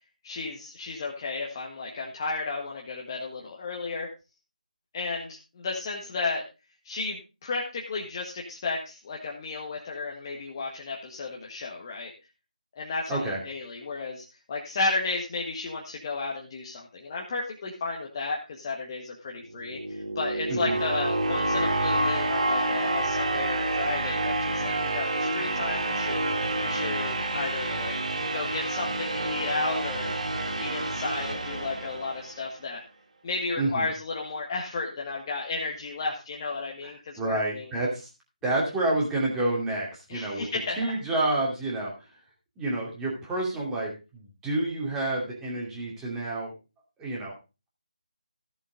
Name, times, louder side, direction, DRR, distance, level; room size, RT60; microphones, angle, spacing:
voice 1, 0.2-4.1 4.9-6.4 6.8-12.1 12.7-26.2 26.6-28.0 28.3-30.3 30.6-32.8 33.2-37.7 40.1-40.9, left 3 dB, 30° left, -1 dB, 1.6 m, -33 dB
voice 2, 13.1-13.4 20.5-20.8 33.6-33.9 36.8-38.1 38.4-40.5 40.8-42.1 42.6-46.5 47.0-47.3, right 2 dB, 10° right, -3 dB, 2.6 m, -29 dB
sound 1, 19.5-32.5, right 2 dB, 55° right, 2.5 m, -28 dB
14.5 x 7.1 x 3.8 m, 0.29 s
figure-of-eight pair, 160°, 4 cm